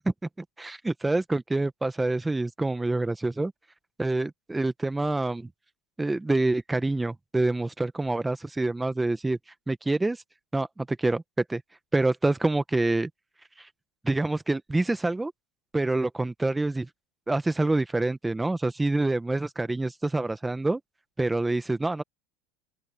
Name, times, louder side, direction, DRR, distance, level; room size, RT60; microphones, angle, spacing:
voice 1, 0.0-3.5 4.0-5.5 6.0-9.4 9.7-10.2 10.5-11.2 11.5-11.6 11.9-13.1 14.0-15.3 15.7-16.9 17.3-20.8 21.2-22.0, right 2 dB, 10° right, 1.2 m, -26 dB
open air
supercardioid pair, 105°, 0 cm